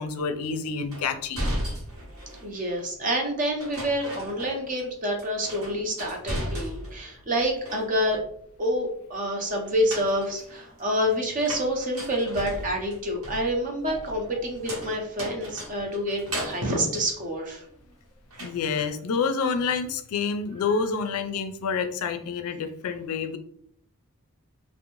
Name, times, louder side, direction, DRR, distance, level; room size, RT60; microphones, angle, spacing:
voice 1, 0.0-1.4 18.4-23.4, left 5 dB, 75° left, 8 dB, 0.4 m, -28 dB
sound 1, 0.9-2.5 3.6-4.9 5.2-7.1 7.4-8.2 9.6-17.9 18.3-18.9, equal, 70° right, 0.9 m, -36 dB
voice 2, 2.4-8.2 8.6-17.6, equal, 35° right, 1 dB, 0.6 m, -27 dB
2.6 x 2.0 x 2.9 m, 0.65 s
head